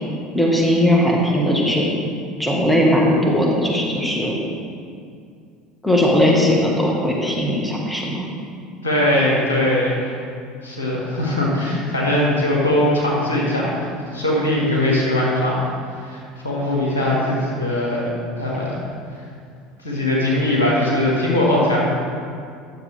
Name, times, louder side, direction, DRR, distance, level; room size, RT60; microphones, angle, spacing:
voice 1, 0.3-1.9 2.4-4.4 5.8-8.3, left 1 dB, 5° left, -3 dB, 1.5 m, -18 dB
voice 2, 8.8-10.2 10.6-15.6 16.0-18.1 18.4-18.8 19.8-21.8, left 1 dB, 75° left, -5 dB, 1.9 m, -20 dB
10.0 x 6.9 x 3.5 m, 2.3 s
figure-of-eight pair, 70°, 0 cm